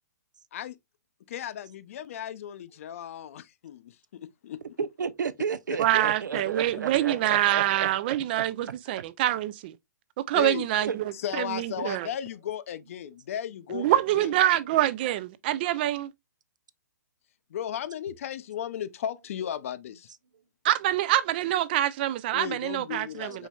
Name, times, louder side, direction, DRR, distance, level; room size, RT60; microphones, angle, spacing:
voice 1, 1.3-4.6 10.3-10.7 11.1-14.3 17.5-20.1 22.3-23.5, left 10 dB, 50° left, 0.5 m, -35 dB
voice 2, 4.8-7.9 10.9-11.0, right 6 dB, 85° right, 0.6 m, -32 dB
voice 3, 5.8-9.8 10.2-12.1 13.7-16.1 20.6-23.5, right 13 dB, 30° right, 0.4 m, -26 dB
4.5 x 4.1 x 2.3 m
hypercardioid pair, 150°, 10 cm